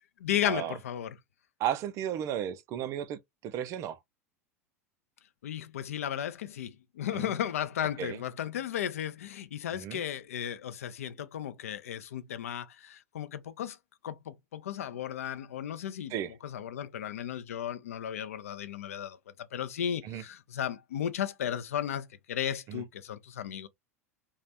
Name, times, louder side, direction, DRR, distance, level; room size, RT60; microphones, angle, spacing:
voice 1, 0.2-1.1 5.4-13.8 14.0-16.1 16.4-19.2 19.5-23.7, left 10 dB, 70° left, 0.4 m, -35 dB
voice 2, 1.6-4.0 7.1-7.3 8.0-8.2 9.7-10.0 16.1-16.3 20.0-20.2 22.7-22.8, right 10 dB, 40° right, 0.4 m, -34 dB
2.4 x 2.0 x 2.6 m
figure-of-eight pair, 85°, 8 cm